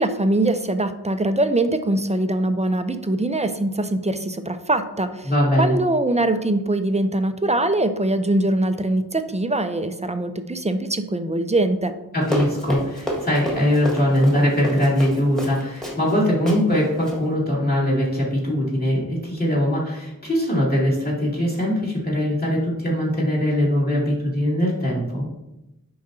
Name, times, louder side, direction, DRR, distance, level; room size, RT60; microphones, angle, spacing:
voice 1, 0.0-5.3 5.6-12.0, right 2 dB, 20° right, 9 dB, 0.4 m, -22 dB
voice 2, 5.2-5.7 12.1-25.3, equal, 25° left, -6 dB, 2.4 m, -21 dB
Run, 12.2-16.2 16.5-16.6 17.0-17.2, equal, ahead, 1.6 m, -29 dB
10.5 x 3.9 x 2.7 m, 0.94 s
wide cardioid pair, 55°, 37 cm